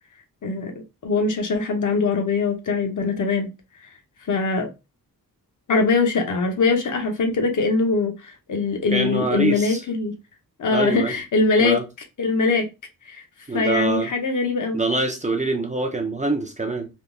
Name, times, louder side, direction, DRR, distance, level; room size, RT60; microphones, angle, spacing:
voice 1, 0.4-0.7 1.0-3.5 4.3-4.7 5.7-10.2 10.6-11.8 12.2-12.7 13.1-13.2 13.5-14.8, left 4 dB, 55° left, 0.7 m, -22 dB
voice 2, 8.9-9.8 10.7-11.1 11.6-11.8 13.5-14.1 14.7-16.9, right 2 dB, 20° right, 0.4 m, -24 dB
3.5 x 2.7 x 2.6 m
wide cardioid pair, 165°, 36 cm